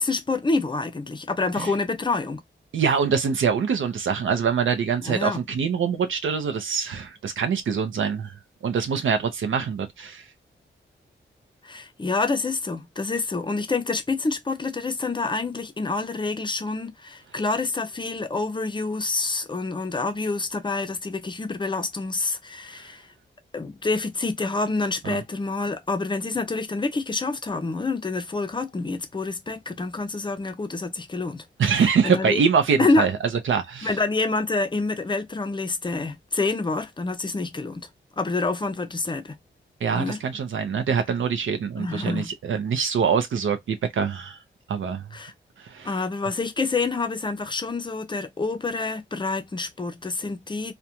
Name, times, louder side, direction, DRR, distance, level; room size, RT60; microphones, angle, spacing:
voice 1, 0.0-2.4 5.0-5.4 11.6-23.1 23.5-31.5 32.0-32.4 32.8-33.1 33.8-37.9 38.2-39.4 39.9-40.2 41.8-42.3 45.1-45.3 45.8-50.7, left 3 dB, 25° left, 0.5 m, -27 dB
voice 2, 2.7-8.4 8.6-10.2 25.0-25.2 31.6-33.2 33.5-33.9 39.8-44.4 44.7-45.0 45.6-45.9, right 6 dB, 75° right, 0.5 m, -24 dB
2.4 x 2.2 x 2.7 m
wide cardioid pair, 100°, 20 cm